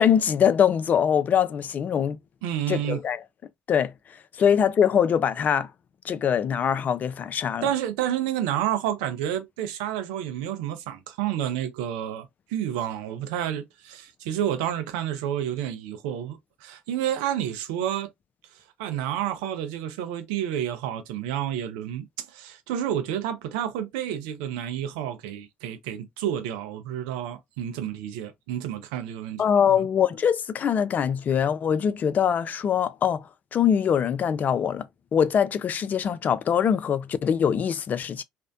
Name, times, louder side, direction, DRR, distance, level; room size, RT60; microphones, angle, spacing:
voice 1, 0.0-2.2 2.7-3.2 3.7-3.9 4.4-5.7 6.0-7.7 29.4-34.8 35.1-38.2, left 8 dB, 40° left, 0.4 m, -23 dB
voice 2, 2.4-3.0 7.6-18.1 18.8-29.4 29.7-29.9, right 10 dB, 75° right, 0.5 m, -30 dB
2.5 x 2.1 x 2.5 m
hypercardioid pair, 65°, 4 cm